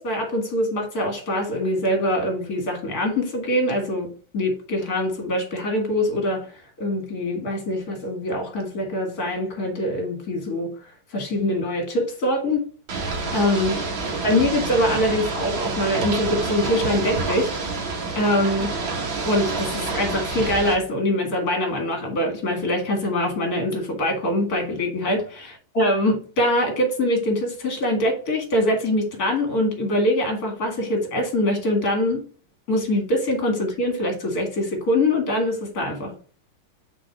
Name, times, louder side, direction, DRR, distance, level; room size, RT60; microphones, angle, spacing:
voice 1, 0.0-4.1 4.3-6.5 6.8-10.7 11.1-12.6 13.3-13.8 14.2-17.5 18.2-18.7 19.2-32.2 32.7-36.1, left 1 dB, 45° left, 2.5 m, -23 dB
Ocean / Boat Water vehicle, 12.9-20.7, right 3 dB, 70° right, 2.4 m, -28 dB
6.0 x 4.7 x 4.7 m
omnidirectional pair, 2.3 m